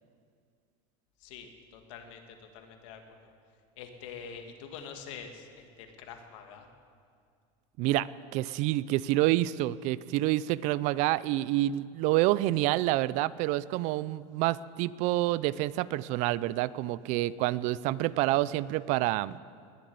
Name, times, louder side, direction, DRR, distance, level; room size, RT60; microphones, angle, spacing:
voice 1, 1.2-3.3 3.8-6.7, left 6 dB, 75° left, 5 dB, 2.1 m, -46 dB
voice 2, 8.3-19.4, right 16 dB, 45° right, 19 dB, 0.4 m, -28 dB
20.0 x 7.4 x 9.4 m, 2.2 s
supercardioid pair, 155°, 16 cm